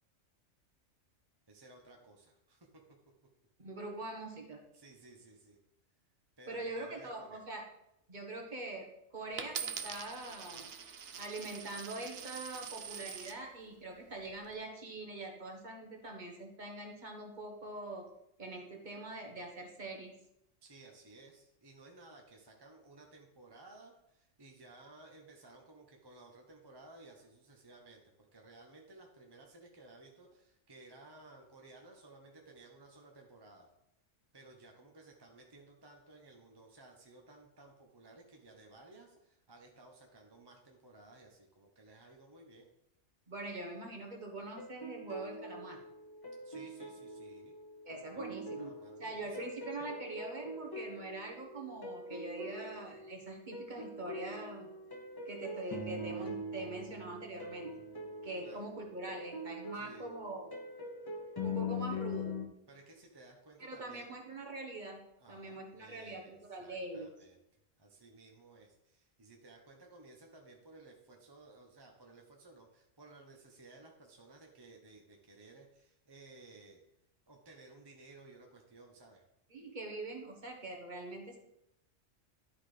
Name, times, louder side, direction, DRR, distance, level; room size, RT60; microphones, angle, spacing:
voice 1, 1.5-2.8 4.7-5.6 6.4-7.4 20.6-28.0 28.3-33.7 34.3-42.7 46.4-47.5 48.1-49.4 58.4-58.6 59.7-60.1 62.7-64.1 65.2-67.4 67.8-76.8 77.3-79.2, right 2 dB, 20° right, 1 dB, 0.8 m, -57 dB
voice 2, 3.6-4.6 6.5-7.6 8.1-10.7 11.2-18.1 18.4-20.1 43.3-45.8 47.8-48.7 49.0-54.7 55.2-57.8 58.2-60.5 61.4-62.3 63.6-65.0 65.3-67.1 79.5-81.4, right 2 dB, 40° right, 1 dB, 1.4 m, -43 dB
Coin (dropping), 9.4-13.4 14.1-14.5, right 7 dB, 60° right, 0.9 m, -44 dB
sound 1, 44.6-62.5, left 2 dB, 20° left, 0.9 m, -43 dB
11.5 x 4.0 x 5.0 m, 0.83 s
omnidirectional pair, 1.3 m